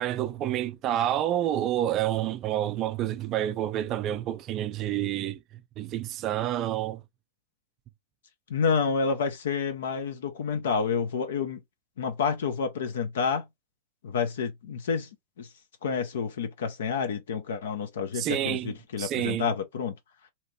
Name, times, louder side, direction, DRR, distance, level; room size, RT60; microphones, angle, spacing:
voice 1, 0.0-5.4 5.8-7.0 18.1-19.5, right 12 dB, 40° right, 0.4 m, -29 dB
voice 2, 8.5-11.6 12.0-13.5 14.0-15.1 15.4-15.5 15.8-19.9, left 5 dB, 70° left, 0.6 m, -29 dB
2.9 x 2.6 x 2.7 m
figure-of-eight pair, 95°, 0 cm